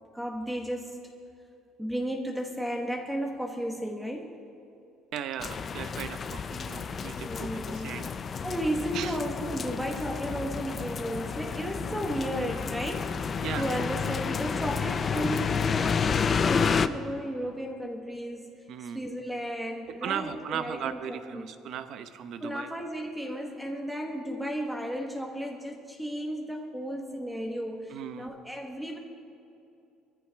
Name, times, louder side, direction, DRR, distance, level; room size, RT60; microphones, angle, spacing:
voice 1, 0.1-1.0 1.8-4.3 7.2-7.9 8.4-21.4 22.4-29.0, equal, 5° right, 2 dB, 1.2 m, -34 dB
voice 2, 5.1-8.1 8.9-9.2 13.4-13.7 18.7-19.0 20.0-22.7 27.9-28.3, right 9 dB, 50° right, 10 dB, 0.8 m, -37 dB
sound 1, 5.4-16.9, left 6 dB, 25° left, 0.4 m, -30 dB
22.5 x 14.5 x 3.5 m, 2.6 s
cardioid pair, 170°, 0 cm